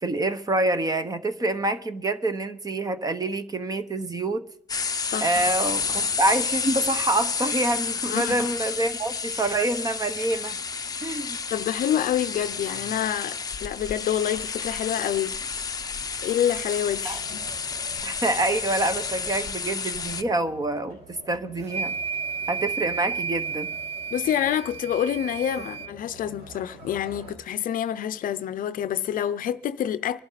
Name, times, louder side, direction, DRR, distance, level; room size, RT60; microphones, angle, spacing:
voice 1, 0.0-4.4 5.2-10.6 11.0-11.4 17.0-17.2 18.0-21.9 22.5-23.7, right 2 dB, 20° right, 1.0 m, -26 dB
sound 1, 4.7-20.2, left 5 dB, 20° left, 0.7 m, -30 dB
voice 2, 11.5-15.4 16.2-17.4 24.1-30.2, left 10 dB, 55° left, 0.6 m, -27 dB
sound 2, 17.0-27.3, right 1 dB, 70° right, 4.8 m, -48 dB
sound 3, 21.6-25.9, right 6 dB, 40° right, 0.5 m, -32 dB
25.0 x 11.5 x 4.1 m
cardioid pair, 110°, 17 cm